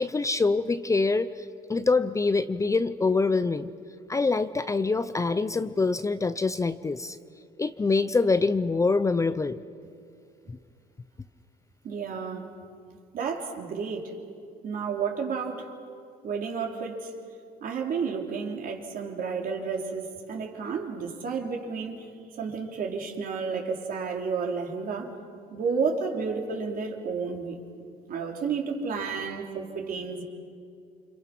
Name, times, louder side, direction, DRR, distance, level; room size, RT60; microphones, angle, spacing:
voice 1, 0.0-3.7 4.1-7.2 7.6-9.6 10.5-10.6, left 3 dB, 20° left, 12 dB, 0.6 m, -25 dB
voice 2, 11.8-12.5 13.1-14.1 14.6-15.7 16.2-17.1 17.6-22.1 22.4-25.1 25.5-27.6 28.1-30.2, right 5 dB, 55° right, 1 dB, 3.6 m, -31 dB
28.5 x 26.0 x 6.1 m, 2.4 s
cardioid pair, 110°, 17 cm